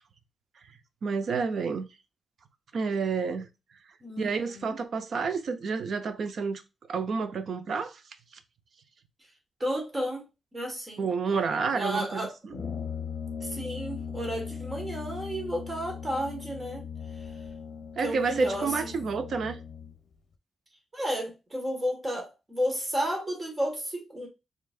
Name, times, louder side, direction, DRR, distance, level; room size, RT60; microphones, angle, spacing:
voice 1, 1.0-1.9 2.7-3.5 4.2-6.6 6.9-8.0 11.0-12.5 18.0-19.6, right 5 dB, 55° right, 0.6 m, -29 dB
voice 2, 4.0-4.8 9.6-10.3 10.5-11.1 11.7-12.3 13.4-16.8 18.0-19.1 20.9-24.3, equal, 20° right, 1.4 m, -32 dB
Brass instrument, 12.5-20.0, left 6 dB, 65° left, 0.7 m, -39 dB
4.7 x 3.2 x 2.4 m
wide cardioid pair, 155°, 0 cm